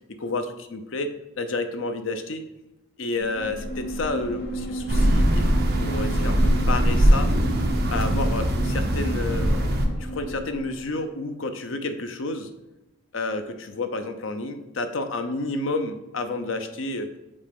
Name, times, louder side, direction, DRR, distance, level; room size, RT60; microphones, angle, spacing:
voice 1, 0.2-1.1 1.4-2.4 3.0-7.3 7.9-9.7 10.0-12.5 13.1-17.1, left 2 dB, 75° left, 7 dB, 0.7 m, -30 dB
sound 1, 3.1-11.0, right 1 dB, 55° left, 1.0 m, -34 dB
sound 2, 4.9-9.9, equal, 55° right, 0.9 m, -21 dB
5.3 x 4.1 x 5.2 m, 0.98 s
head